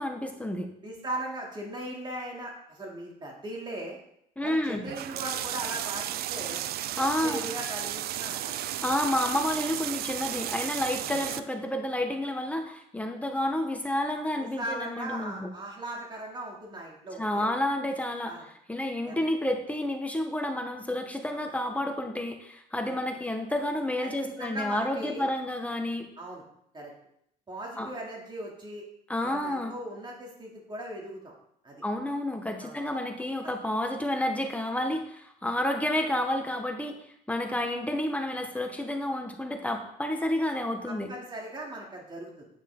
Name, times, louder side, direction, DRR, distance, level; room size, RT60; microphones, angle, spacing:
voice 1, 0.0-0.7 4.4-4.9 7.0-7.5 8.8-15.5 17.2-18.3 18.7-26.1 27.8-27.9 29.1-29.7 31.8-36.9 37.3-41.1, left 1 dB, 10° left, 4 dB, 1.3 m, -30 dB
voice 2, 0.8-4.0 4.4-6.6 7.0-8.5 14.6-17.5 18.2-18.5 19.0-19.2 24.0-25.3 26.2-26.4 26.7-26.9 27.5-28.8 29.2-31.3 31.6-31.8 32.6-32.8 33.4-33.5 40.8-42.5, right 1 dB, 25° right, -2 dB, 3.0 m, -38 dB
sound 1, 4.9-11.4, right 12 dB, 70° right, 0.5 m, -34 dB
9.3 x 8.9 x 3.9 m, 0.73 s
cardioid pair, 110°, 17 cm